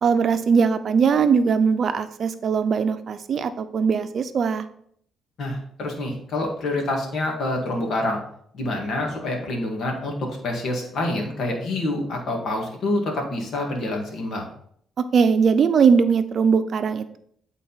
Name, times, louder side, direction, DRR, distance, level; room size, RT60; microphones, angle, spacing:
voice 1, 0.0-4.7 15.0-17.2, right 6 dB, 55° right, 11 dB, 0.6 m, -20 dB
voice 2, 5.4-8.2 8.5-14.5, left 2 dB, 65° left, 1 dB, 2.0 m, -27 dB
8.4 x 4.0 x 4.0 m, 0.65 s
cardioid pair, 90°, 0 cm